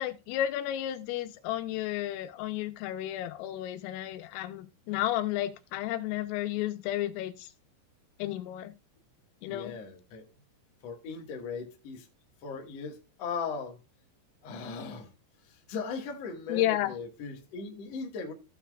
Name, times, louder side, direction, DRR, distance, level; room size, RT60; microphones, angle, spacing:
voice 1, 0.0-7.5 8.2-8.7 9.4-9.7 16.5-16.9, left 13 dB, 90° left, 3.5 m, -32 dB
voice 2, 9.5-10.3 10.8-12.1 12.4-13.8 14.4-15.1 15.4-18.3, left 5 dB, 55° left, 1.8 m, -38 dB
15.5 x 5.7 x 2.4 m
omnidirectional pair, 5.7 m